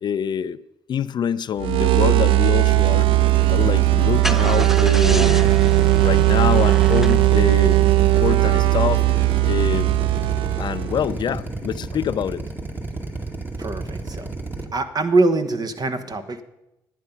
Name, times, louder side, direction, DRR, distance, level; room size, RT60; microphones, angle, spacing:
voice 1, 0.0-0.6 0.9-5.5 6.0-9.0 9.4-9.9 10.6-12.4, left 8 dB, 50° left, 0.4 m, -26 dB
sound 1, 1.6-11.1, right 17 dB, 70° right, 0.3 m, -18 dB
Drill, 2.7-14.6, right 2 dB, 20° right, 2.1 m, -30 dB
Car / Engine starting, 4.2-8.5, right 1 dB, 5° right, 0.6 m, -31 dB
voice 2, 13.6-14.3 14.7-16.4, right 3 dB, 45° right, 1.4 m, -23 dB
11.0 x 9.4 x 5.6 m
hypercardioid pair, 60°, 10 cm